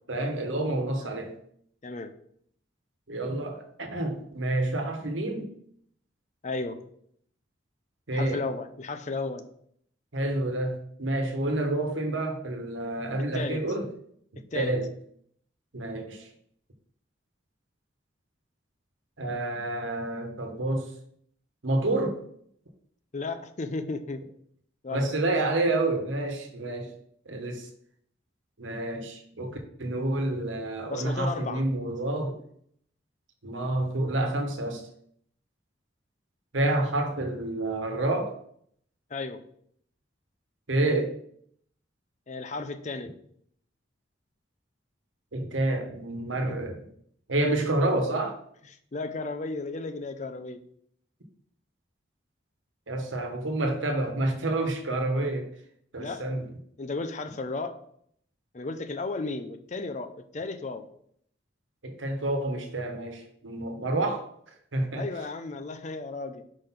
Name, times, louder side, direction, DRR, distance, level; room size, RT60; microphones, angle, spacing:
voice 1, 0.1-1.3 3.1-5.5 8.1-8.5 10.1-13.9 14.5-14.9 15.7-16.3 19.2-20.9 21.6-22.2 24.9-26.9 27.3-27.7 28.6-32.4 33.4-34.8 36.5-38.3 40.7-41.1 45.3-46.8 47.3-48.4 52.9-55.5 55.9-56.5 61.8-64.2 64.7-65.3, right 2 dB, 85° right, 5 dB, 1.2 m, -28 dB
voice 2, 6.4-6.8 8.1-9.5 13.3-13.6 14.5-14.7 23.1-24.2 24.8-25.1 30.9-31.6 39.1-39.4 42.3-43.1 48.9-50.6 56.0-56.2 56.8-57.8 58.5-60.8 64.9-66.4, left 3 dB, 40° left, 9 dB, 0.5 m, -34 dB
5.0 x 3.9 x 5.7 m, 0.66 s
head